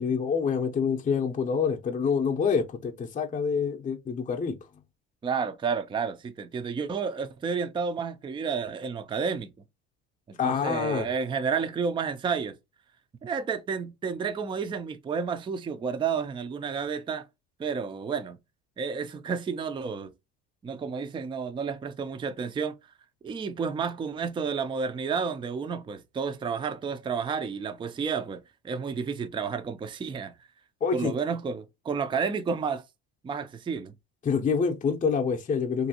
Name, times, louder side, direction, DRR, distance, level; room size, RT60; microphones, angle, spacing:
voice 1, 0.0-4.6 10.4-11.1 30.8-31.1 34.2-35.9, left 6 dB, 25° left, 0.6 m, -26 dB
voice 2, 5.2-9.5 10.3-12.5 13.2-17.3 17.6-18.4 18.8-20.1 20.6-22.7 23.2-30.3 30.9-32.8 33.2-33.9, right 5 dB, 15° right, 0.4 m, -31 dB
2.8 x 2.6 x 2.7 m
supercardioid pair, 85°, 33 cm